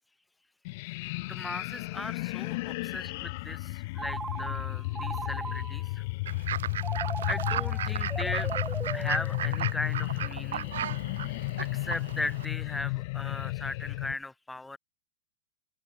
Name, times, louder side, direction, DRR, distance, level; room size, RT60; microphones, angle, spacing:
sound 1, 0.6-14.1, left 23 dB, 50° left, 0.6 m, -33 dB
voice 1, 1.2-6.0 7.3-8.6 8.9-10.8 11.2-11.3 11.6-14.8, left 2 dB, 5° left, 0.6 m, -38 dB
Telephone, 3.9-6.0 6.8-9.8, right 5 dB, 15° right, 2.7 m, -39 dB
Fowl / Bird, 6.3-12.5, right 10 dB, 60° right, 0.6 m, -36 dB
open air
figure-of-eight pair, 90°, 0 cm